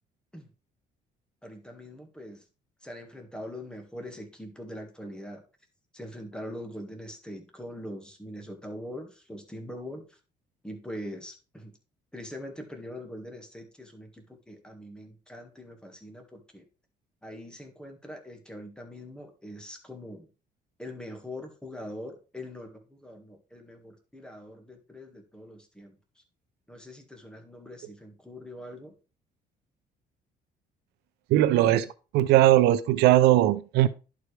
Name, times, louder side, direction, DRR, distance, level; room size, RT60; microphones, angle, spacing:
voice 1, 1.4-2.5 2.8-5.4 5.9-10.2 10.6-11.8 12.1-16.7 17.2-20.3 20.8-26.2 26.7-28.9, left 1 dB, 5° left, 1.8 m, -42 dB
voice 2, 31.3-31.9 32.1-33.9, right 14 dB, 85° right, 0.6 m, -19 dB
11.0 x 4.9 x 3.3 m
cardioid pair, 110°, 17 cm